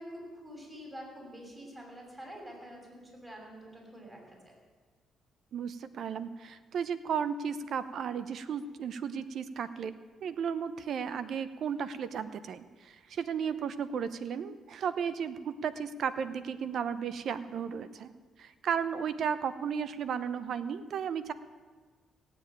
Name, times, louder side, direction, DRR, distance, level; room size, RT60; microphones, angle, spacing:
voice 1, 0.0-4.5, equal, 20° right, -1 dB, 6.2 m, -47 dB
voice 2, 5.5-9.9 10.2-18.1 18.4-21.3, right 7 dB, 65° right, 13 dB, 0.8 m, -34 dB
17.0 x 7.7 x 9.0 m, 1.4 s
cardioid pair, 90°, 0 cm